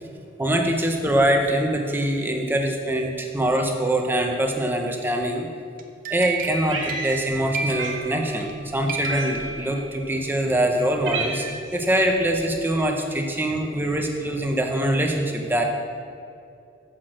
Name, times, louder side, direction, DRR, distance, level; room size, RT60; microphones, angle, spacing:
voice 1, 0.4-5.5 6.1-15.6, right 1 dB, 10° right, 2 dB, 0.7 m, -23 dB
sound 1, 5.8-8.6 8.9-10.2, right 3 dB, 45° right, 0.8 m, -31 dB
Cat, 6.7-7.5 7.8-8.0 9.1-9.6 10.3-10.4 10.7-11.7, right 4 dB, 65° right, 1.5 m, -31 dB
8.3 x 6.0 x 6.3 m, 2.5 s
head